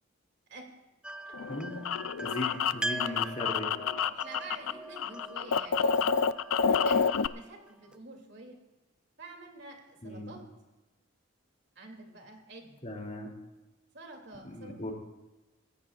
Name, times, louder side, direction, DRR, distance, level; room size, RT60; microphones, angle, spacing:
sound 1, 1.0-8.0, right 1 dB, 5° right, 0.3 m, -42 dB
sound 2, 1.3-4.7 5.0-7.3, left 6 dB, 85° left, 0.5 m, -28 dB
voice 1, 2.2-3.7 10.0-10.4 12.8-13.3 14.4-14.9, left 1 dB, 35° left, 1 dB, 2.8 m, -38 dB
voice 2, 4.1-6.3 6.7-8.6 9.2-10.5 11.7-12.8 13.9-14.9, right 2 dB, 60° right, 2 dB, 2.7 m, -48 dB
24.0 x 15.5 x 2.4 m, 1.1 s
head